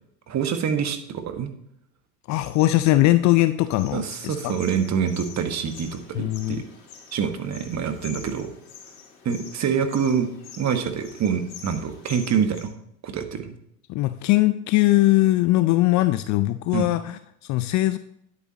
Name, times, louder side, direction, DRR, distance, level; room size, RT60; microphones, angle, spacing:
voice 1, 0.3-1.5 3.9-6.6 7.1-8.5 9.2-10.3 10.6-12.7 13.0-13.5 16.7-16.9, right 7 dB, 35° right, 8 dB, 1.4 m, -26 dB
voice 2, 2.3-4.6 6.1-6.6 13.9-18.0, left 17 dB, 40° left, 12 dB, 0.4 m, -21 dB
sound 1, 3.8-12.6, left 6 dB, 80° left, 3.5 m, -45 dB
10.0 x 8.7 x 4.0 m, 0.74 s
hypercardioid pair, 90°, 49 cm